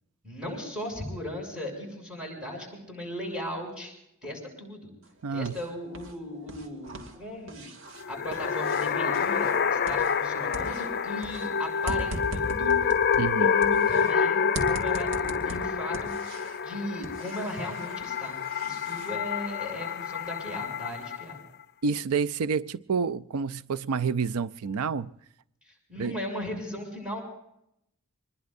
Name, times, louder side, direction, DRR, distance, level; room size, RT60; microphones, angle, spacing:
voice 1, 0.2-3.9 4.2-5.0 5.3-7.7 8.1-12.9 13.4-21.4 25.6-27.2, left 1 dB, 5° right, 6.9 m, -37 dB
sound 1, 5.0-6.2 6.4-10.3 10.5-14.1 14.5-16.7 17.0-19.2, equal, 65° right, 2.4 m, -40 dB
voice 2, 5.2-5.5 13.2-13.5 19.0-19.1 21.8-25.1 26.0-26.1, right 5 dB, 90° right, 0.5 m, -28 dB
sound 2, 8.0-21.4, left 6 dB, 45° left, 0.6 m, -28 dB
25.5 x 21.0 x 2.6 m
head